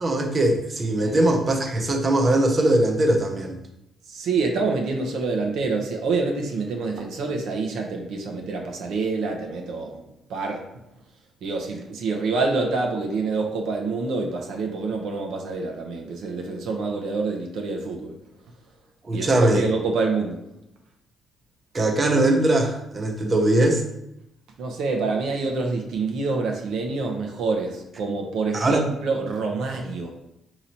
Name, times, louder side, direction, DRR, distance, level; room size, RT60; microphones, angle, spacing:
voice 1, 0.0-3.6 19.0-19.6 21.7-23.8 28.5-28.8, right 1 dB, 35° right, 3 dB, 0.6 m, -21 dB
voice 2, 4.1-10.0 10.3-10.6 11.4-18.1 19.1-20.4 24.6-30.1, right 3 dB, 80° right, 2 dB, 0.7 m, -27 dB
4.0 x 2.9 x 4.2 m, 0.85 s
cardioid pair, 90°, 0 cm